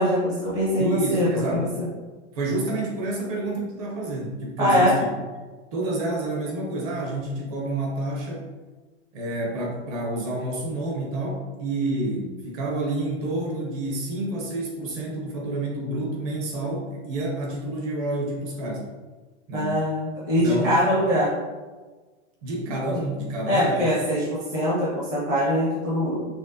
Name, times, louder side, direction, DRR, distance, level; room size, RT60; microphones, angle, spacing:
voice 1, 0.0-1.7 4.6-5.0 19.5-21.3 23.5-26.2, equal, 10° right, -8 dB, 0.6 m, -22 dB
voice 2, 0.8-1.7 2.3-5.1 5.7-8.5 9.1-18.9 19.5-19.7 20.4-20.8 22.4-23.9, right 2 dB, 30° right, -2 dB, 0.9 m, -29 dB
6.1 x 3.0 x 2.8 m, 1.3 s
supercardioid pair, 180°, 36 cm